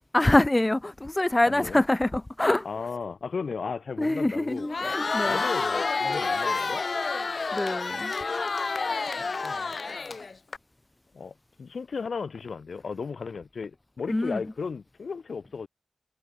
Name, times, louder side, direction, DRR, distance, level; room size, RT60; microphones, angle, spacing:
voice 1, 0.1-2.7 4.0-5.4 7.5-8.1 14.1-14.4, left 1 dB, 20° left, 1.0 m, -25 dB
voice 2, 1.5-1.8 2.6-4.7 5.2-6.8 9.1-9.7 11.1-15.7, left 5 dB, 70° left, 1.6 m, -35 dB
Crowd, 4.6-10.6, left 4 dB, 50° left, 3.5 m, -29 dB
wide cardioid pair, 125°, 0 cm